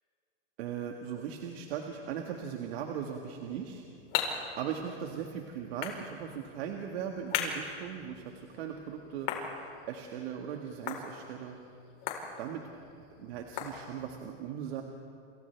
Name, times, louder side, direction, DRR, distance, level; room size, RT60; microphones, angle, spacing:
voice 1, 0.6-3.8 4.6-9.3 9.9-11.6 12.4-12.7 13.2-14.8, right 8 dB, 70° right, 2 dB, 1.8 m, -38 dB
sound 1, 3.4-14.3, left 7 dB, 55° left, 4.1 m, -40 dB
28.5 x 28.0 x 3.5 m, 2.4 s
supercardioid pair, 140°, 33 cm